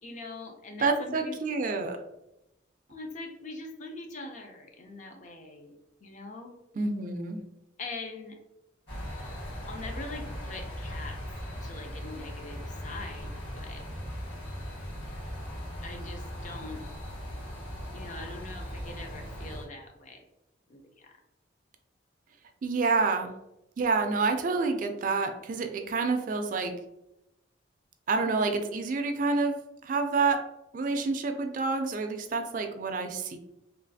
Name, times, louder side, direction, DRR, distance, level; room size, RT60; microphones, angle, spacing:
voice 1, 0.0-1.4 2.9-5.7 6.0-6.6 7.8-8.4 9.7-11.2 11.6-13.8 15.8-16.8 17.9-20.2 20.7-21.2, left 2 dB, 40° left, 3 dB, 0.4 m, -42 dB
voice 2, 0.8-2.0 6.8-7.4 22.6-23.3 23.8-26.8 28.1-29.6 29.8-30.4 30.7-33.4, right 4 dB, 45° right, 5 dB, 0.3 m, -28 dB
sound 1, 8.9-19.7, equal, 70° left, 1.4 m, -39 dB
3.1 x 2.3 x 2.6 m, 0.88 s
head